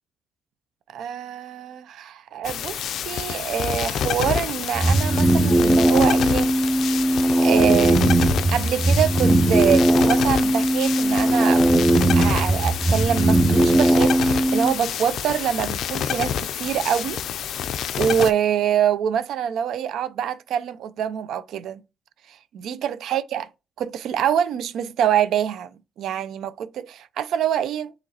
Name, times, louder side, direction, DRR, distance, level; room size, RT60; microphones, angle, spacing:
voice 1, 0.9-6.5 7.4-8.2 8.5-11.8 12.1-17.2 18.0-21.8 22.3-23.5 23.8-25.7 26.0-27.9, right 9 dB, 75° right, 0.3 m, -25 dB
sound 1, 2.4-18.3, left 9 dB, 70° left, 0.3 m, -28 dB
sound 2, 4.7-14.7, right 1 dB, 10° right, 0.4 m, -19 dB
6.3 x 3.0 x 2.7 m
cardioid pair, 90°, 0 cm